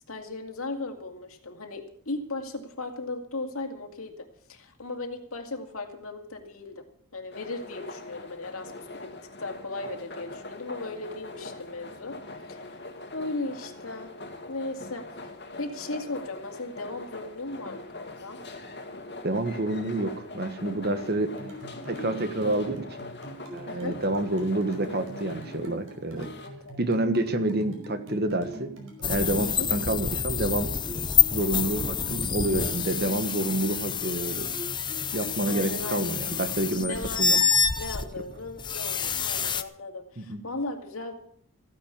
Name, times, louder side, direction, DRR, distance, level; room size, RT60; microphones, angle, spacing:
voice 1, 0.1-6.8 7.1-12.2 12.5-12.6 13.1-14.1 14.5-15.0 15.6-18.4 20.9-21.1 23.7-24.0 26.2-26.8 29.4-29.7 33.4-33.7 35.5-36.2 36.9-37.3 37.8-41.2, left 2 dB, 70° left, 4 dB, 2.3 m, -37 dB
sound 1, 7.3-26.5, left 2 dB, 50° left, 2.2 m, -42 dB
voice 2, 19.2-21.3 21.8-22.9 23.5-26.3 26.8-28.7 29.1-30.7 31.3-34.5 35.1-37.4 40.2-40.4, right 1 dB, 45° right, 9 dB, 1.4 m, -28 dB
sound 2, 21.4-37.9, equal, 70° right, 4.9 m, -43 dB
sound 3, 29.0-39.6, left 7 dB, 20° left, 0.5 m, -27 dB
15.5 x 10.0 x 7.0 m, 0.63 s
head